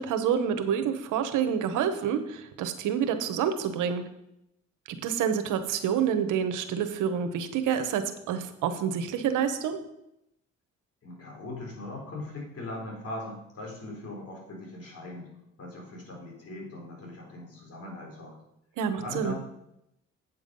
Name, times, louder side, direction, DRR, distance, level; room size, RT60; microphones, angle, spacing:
voice 1, 0.0-4.0 4.9-9.8 18.8-19.3, right 8 dB, 90° right, 9 dB, 1.0 m, -28 dB
voice 2, 11.0-15.3 15.6-18.4 18.9-19.4, left 2 dB, 50° left, -1 dB, 4.1 m, -40 dB
8.4 x 7.1 x 5.4 m, 0.83 s
cardioid pair, 90°, 30 cm